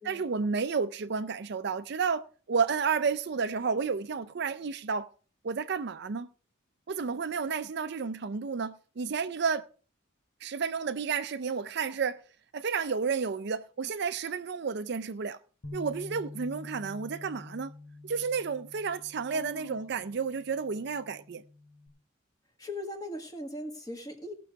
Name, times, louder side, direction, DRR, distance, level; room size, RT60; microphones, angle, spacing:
voice 1, 0.1-5.1 5.4-6.3 6.9-9.7 10.4-12.2 12.5-15.4 15.7-17.7 18.0-21.4, right 5 dB, 55° right, 0.5 m, -31 dB
Bass guitar, 15.6-21.9, left 2 dB, 70° left, 1.7 m, -48 dB
voice 2, 19.3-20.0 22.6-24.3, left 1 dB, 20° left, 1.7 m, -40 dB
17.5 x 6.2 x 4.6 m
head